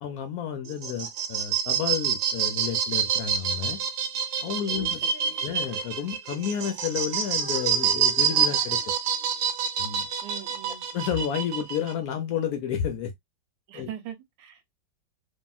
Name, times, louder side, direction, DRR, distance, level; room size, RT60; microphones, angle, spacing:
voice 1, 0.0-3.8 4.4-5.0 5.4-8.8 9.8-10.1 10.9-13.1 13.7-13.9, left 8 dB, 70° left, 0.9 m, -31 dB
sound 1, 0.7-11.9, right 8 dB, 90° right, 1.4 m, -27 dB
voice 2, 4.7-5.4 10.2-10.8 13.7-14.6, right 11 dB, 70° right, 1.3 m, -42 dB
Female singing, 4.8-7.1 7.4-9.5, right 3 dB, 10° right, 1.0 m, -48 dB
2.8 x 2.7 x 2.3 m
omnidirectional pair, 2.1 m